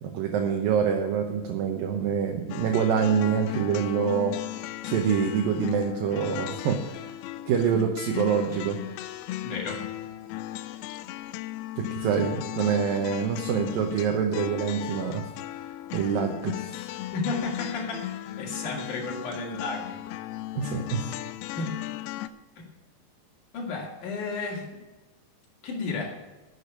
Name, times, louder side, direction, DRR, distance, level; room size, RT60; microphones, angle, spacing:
voice 1, 0.0-4.4 4.8-7.0 7.5-8.8 11.8-15.3 15.9-16.7 20.6-21.0, right 7 dB, 70° right, 2 dB, 2.6 m, -26 dB
sound 1, 2.5-22.3, left 14 dB, 85° left, 2.6 m, -36 dB
voice 2, 9.4-9.8 17.1-18.1 18.4-20.0 21.5-21.7 22.6-22.7 23.5-24.6 25.6-26.1, left 3 dB, 55° left, -1 dB, 3.6 m, -32 dB
11.0 x 7.0 x 9.5 m, 1.1 s
omnidirectional pair, 4.5 m